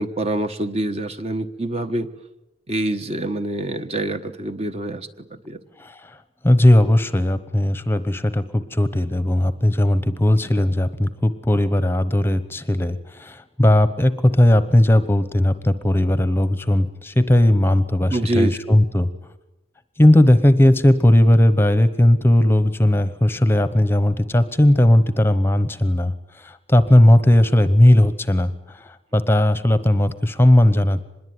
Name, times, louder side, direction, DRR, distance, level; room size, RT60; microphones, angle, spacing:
voice 1, 0.0-2.1 2.7-5.6 18.1-18.8, right 1 dB, 35° right, 8 dB, 1.2 m, -26 dB
voice 2, 5.8-6.2 6.4-19.1 20.0-31.0, left 1 dB, 10° left, 13 dB, 1.0 m, -17 dB
25.5 x 21.5 x 9.5 m, 0.95 s
head